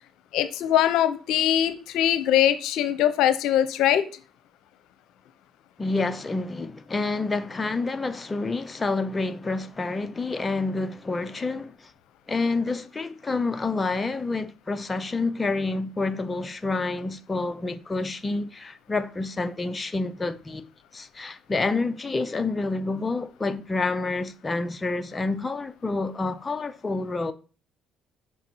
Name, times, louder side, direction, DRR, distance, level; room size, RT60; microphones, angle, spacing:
voice 1, 0.3-4.0, left 11 dB, 80° left, 0.7 m, -22 dB
voice 2, 5.8-11.9 12.3-27.3, left 3 dB, 25° left, 0.6 m, -28 dB
5.9 x 5.4 x 4.5 m
supercardioid pair, 75°, 0 cm